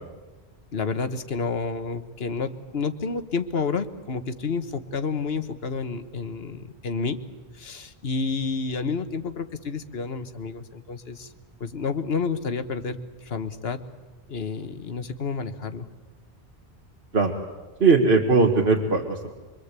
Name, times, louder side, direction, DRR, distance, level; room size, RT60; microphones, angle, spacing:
voice 1, 0.7-7.2 7.5-11.3 11.6-13.8 14.3-15.9, left 4 dB, 75° left, 10 dB, 1.5 m, -30 dB
voice 2, 17.8-19.3, right 4 dB, 70° right, 0 dB, 1.9 m, -19 dB
25.5 x 24.0 x 8.3 m, 1.3 s
omnidirectional pair, 1.0 m